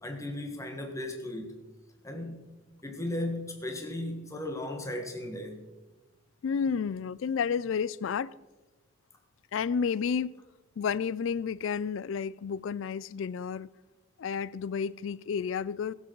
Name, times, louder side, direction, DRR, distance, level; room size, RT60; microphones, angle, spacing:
voice 1, 0.0-1.6 2.0-2.5 2.8-5.7, left 1 dB, 15° left, 1.5 m, -36 dB
voice 2, 6.4-8.3 9.5-10.3 10.8-13.7 14.2-15.9, left 6 dB, 70° left, 0.3 m, -31 dB
21.0 x 7.4 x 4.6 m
head